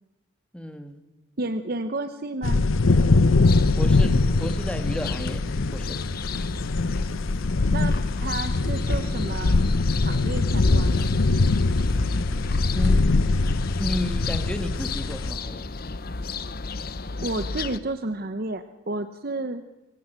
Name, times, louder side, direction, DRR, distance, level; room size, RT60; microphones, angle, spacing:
voice 1, 0.5-1.0 3.8-6.0 12.7-13.2 13.8-15.7, left 1 dB, 5° left, 8 dB, 1.6 m, -33 dB
voice 2, 1.4-2.6 7.7-9.7 10.0-11.1 17.2-19.6, right 2 dB, 45° right, 9 dB, 0.9 m, -31 dB
sound 1, 2.4-15.3, left 3 dB, 75° left, 0.7 m, -22 dB
sound 2, 3.5-17.8, left 3 dB, 45° left, 0.8 m, -33 dB
25.0 x 16.0 x 8.2 m, 1.1 s
head